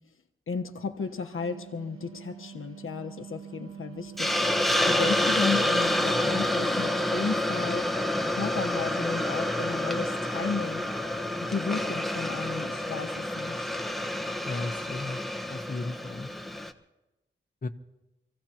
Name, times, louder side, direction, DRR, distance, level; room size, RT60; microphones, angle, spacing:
voice 1, 0.5-8.0 8.3-10.8 11.4-13.8, left 5 dB, 75° left, 5 dB, 1.2 m, -34 dB
Wind instrument woodwind instrument, 1.2-6.5, right 9 dB, 90° right, 1.1 m, -46 dB
Hiss, 4.2-16.7, left 1 dB, ahead, 1.3 m, -28 dB
voice 2, 14.4-16.3 17.6-17.7, left 3 dB, 40° left, 6 dB, 1.1 m, -35 dB
27.0 x 16.0 x 3.0 m, 1.0 s
cardioid pair, 55°, 21 cm